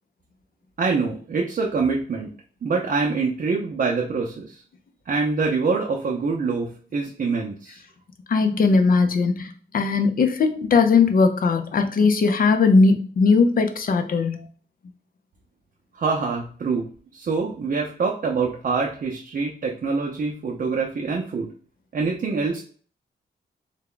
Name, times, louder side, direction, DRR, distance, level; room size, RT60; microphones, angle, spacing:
voice 1, 0.8-2.3 2.6-4.6 5.1-7.8 15.9-16.8 17.1-21.5 21.9-22.6, right 4 dB, 50° right, -1 dB, 0.6 m, -25 dB
voice 2, 8.3-14.5, left 4 dB, 55° left, 7 dB, 0.5 m, -19 dB
3.4 x 2.2 x 3.7 m, 0.43 s
wide cardioid pair, 105°, 18 cm